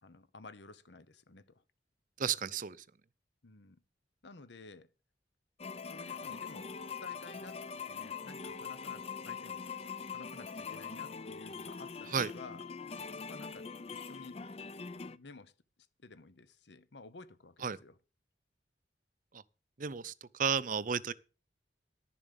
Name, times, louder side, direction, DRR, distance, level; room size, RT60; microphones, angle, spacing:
voice 1, 0.0-1.6 3.4-3.8 4.2-4.9 5.9-6.7 7.0-9.6 10.1-12.6 13.3-13.7 14.1-14.4 15.0-15.5 16.0-17.9, left 3 dB, 75° left, 1.0 m, -53 dB
voice 2, 2.2-2.8 12.1-12.3 17.6-17.8 19.3-19.4 19.8-21.1, right 6 dB, 45° right, 0.6 m, -33 dB
sound 1, 5.6-15.2, left 5 dB, 35° left, 0.5 m, -43 dB
11.5 x 7.2 x 6.9 m
head